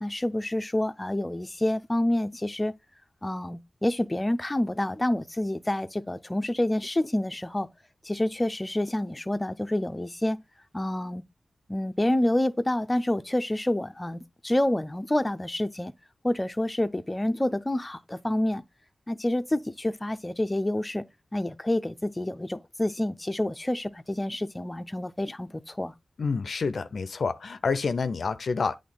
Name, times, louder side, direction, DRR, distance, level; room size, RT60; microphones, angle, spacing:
voice 1, 0.0-2.7 3.2-7.7 8.0-10.4 10.7-11.3 11.7-15.9 16.2-18.6 19.1-21.0 21.3-25.9, left 1 dB, 20° left, 0.5 m, -28 dB
voice 2, 26.2-28.8, left 4 dB, 70° left, 0.5 m, -28 dB
8.5 x 3.2 x 3.8 m
cardioid pair, 45°, 0 cm